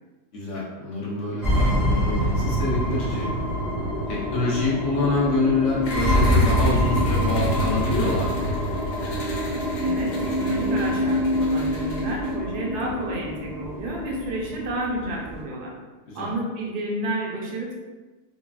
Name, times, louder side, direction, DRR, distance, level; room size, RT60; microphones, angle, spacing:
voice 1, 0.3-3.3 4.1-8.4 8.6-8.7 16.1-16.3, left 3 dB, 65° left, -5 dB, 0.7 m, -26 dB
sound 1, 1.4-15.4, equal, 35° right, 0.7 m, -25 dB
sound 2, 5.8-12.3, left 1 dB, 80° left, 1.2 m, -39 dB
voice 2, 9.8-15.7 16.1-17.7, right 1 dB, 80° right, -2 dB, 1.2 m, -31 dB
3.1 x 2.2 x 2.3 m, 1.3 s
omnidirectional pair, 1.7 m